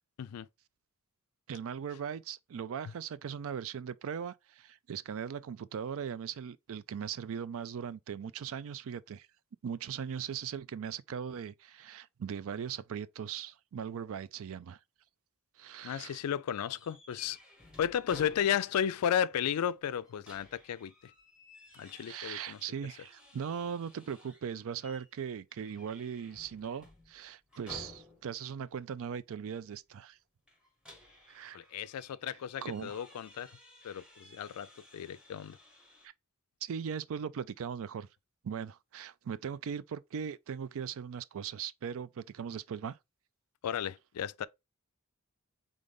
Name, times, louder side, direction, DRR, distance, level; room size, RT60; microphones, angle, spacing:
voice 1, 1.5-9.3 9.6-14.8 15.6-16.2 22.1-30.2 31.3-31.6 32.6-33.0 36.0-36.1 36.6-38.1 38.4-43.0, right 7 dB, 65° right, 0.4 m, -39 dB
voice 2, 15.8-17.4 17.8-20.9 21.7-22.6 31.5-33.6 33.8-35.6 43.6-44.5, left 9 dB, 90° left, 0.4 m, -34 dB
sound 1, 16.7-18.9 19.2-19.3 19.9-24.5 24.8-25.1 25.5-28.4 30.5-36.1, left 2 dB, 5° right, 1.4 m, -55 dB
3.9 x 3.7 x 3.5 m
head